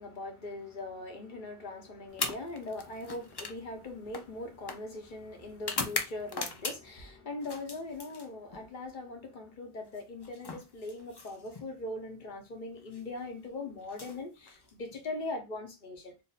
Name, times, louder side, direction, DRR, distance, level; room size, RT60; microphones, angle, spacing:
voice 1, 0.0-16.1, left 2 dB, 50° left, 1.0 m, -41 dB
sound 1, 2.1-7.0 7.4-8.7 9.9-11.7 12.8-13.0 13.8-15.0, left 3 dB, 35° left, 0.4 m, -40 dB
2.7 x 2.6 x 3.9 m
omnidirectional pair, 1.1 m